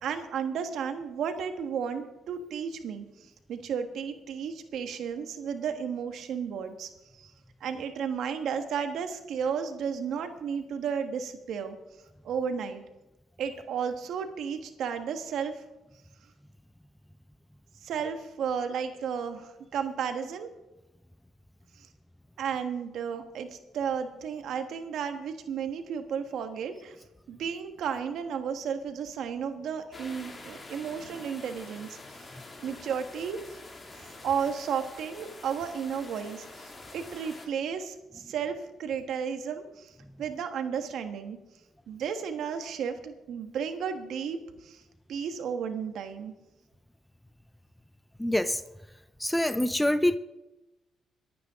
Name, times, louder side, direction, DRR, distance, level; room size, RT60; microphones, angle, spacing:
voice 1, 0.0-7.3 7.6-11.8 12.2-12.8 13.4-15.6 17.8-20.5 21.7-21.9 22.4-27.0 27.3-32.3 32.6-33.6 33.9-41.4 41.9-44.8 45.1-46.3, right 7 dB, 75° right, 7 dB, 1.5 m, -33 dB
sound 1, 29.9-37.5, left 2 dB, 30° left, 2.4 m, -46 dB
voice 2, 48.2-48.6 49.2-50.2, left 1 dB, 5° left, 13 dB, 0.6 m, -25 dB
23.5 x 9.4 x 3.7 m, 1.0 s
cardioid pair, 90°, 0 cm